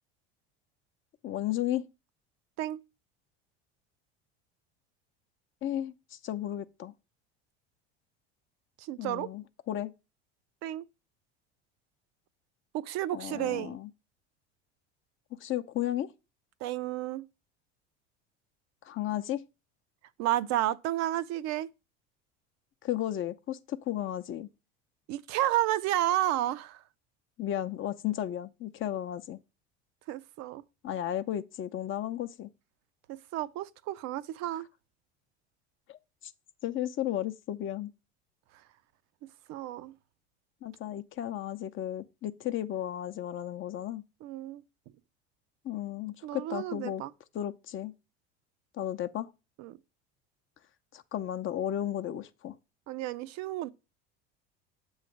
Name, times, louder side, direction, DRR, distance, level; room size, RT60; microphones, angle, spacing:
voice 1, 1.2-1.8 5.6-6.9 9.0-9.9 13.1-13.9 15.4-16.1 18.8-19.4 22.8-24.5 27.4-29.4 30.8-32.5 35.9-36.3 36.6-37.9 40.6-44.0 45.6-47.0 47.3-47.9 48.8-49.3 50.9-52.5, left 12 dB, 40° left, 0.6 m, -34 dB
voice 2, 8.8-9.3 10.6-10.8 12.7-13.8 16.6-17.2 20.2-21.7 25.1-26.8 30.1-30.6 33.1-34.7 39.5-39.9 44.2-44.6 46.2-47.1 49.6-49.8 52.9-53.7, right 14 dB, 55° right, 0.5 m, -31 dB
7.5 x 3.2 x 6.1 m
hypercardioid pair, 80°, 32 cm